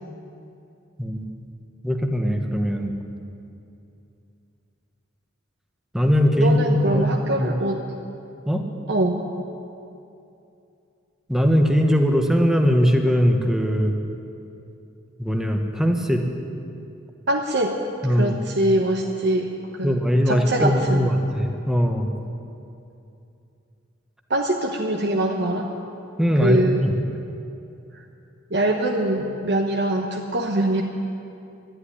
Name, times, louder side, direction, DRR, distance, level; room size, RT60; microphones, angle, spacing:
voice 1, 1.0-1.3 1.8-2.9 5.9-7.0 7.4-7.5 8.5-8.6 11.3-13.9 15.2-16.2 18.0-18.4 19.8-22.1 26.2-26.9, equal, ahead, 3 dB, 1.2 m, -20 dB
voice 2, 6.4-7.8 8.9-9.2 17.3-17.8 18.1-19.5 19.8-20.0 20.3-21.1 24.3-25.7 26.4-26.8 27.9-28.0 28.5-30.8, right 1 dB, 60° right, 1 dB, 1.0 m, -23 dB
12.5 x 11.5 x 10.0 m, 2.7 s
head